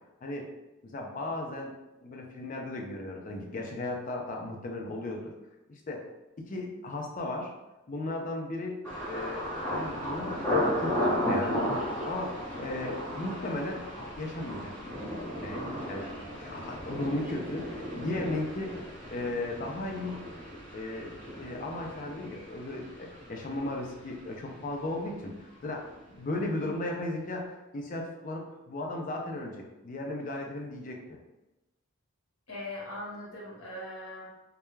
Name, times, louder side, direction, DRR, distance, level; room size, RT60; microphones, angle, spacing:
voice 1, 0.8-1.7 2.0-5.3 5.7-6.0 6.4-7.5 7.9-8.8 9.1-9.4 9.7-13.9 14.2-14.8 15.4-16.1 16.4-18.8 19.1-20.2 20.7-21.1 21.4-25.3 25.6-31.2, left 2 dB, 35° left, 1 dB, 0.4 m, -36 dB
Thunder, 8.8-24.6 24.9-25.5 25.9-26.2, equal, 10° left, 0.9 m, -35 dB
voice 2, 15.7-16.2 32.5-34.3, left 1 dB, 75° left, -4 dB, 0.9 m, -41 dB
2.2 x 2.2 x 3.1 m, 1.0 s
head